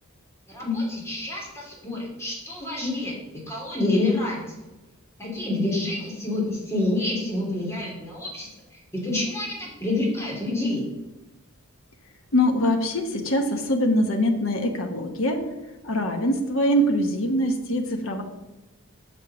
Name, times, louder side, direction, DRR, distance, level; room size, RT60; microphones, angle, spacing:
voice 1, 0.5-4.5 5.2-10.8, left 2 dB, 10° left, -4 dB, 2.9 m, -28 dB
voice 2, 12.3-15.4 15.8-18.2, equal, 60° left, 4 dB, 1.2 m, -23 dB
7.2 x 6.5 x 6.2 m, 1.0 s
head